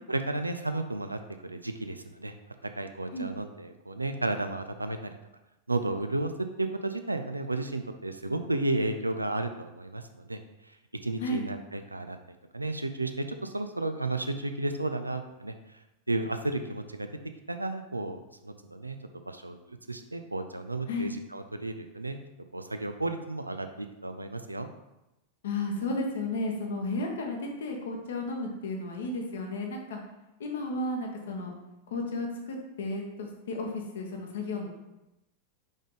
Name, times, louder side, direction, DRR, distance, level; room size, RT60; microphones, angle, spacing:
voice 1, 0.1-2.3 2.6-5.1 5.7-6.3 6.6-10.8 11.0-15.8 16.1-17.1 17.5-19.0 19.2-22.2 22.5-24.7, right 2 dB, 85° right, 7 dB, 0.5 m, -33 dB
voice 2, 25.4-30.0 30.4-31.5 31.9-34.7, left 2 dB, 60° left, 1 dB, 1.2 m, -33 dB
5.4 x 4.9 x 3.9 m, 0.95 s
figure-of-eight pair, 90°, 0 cm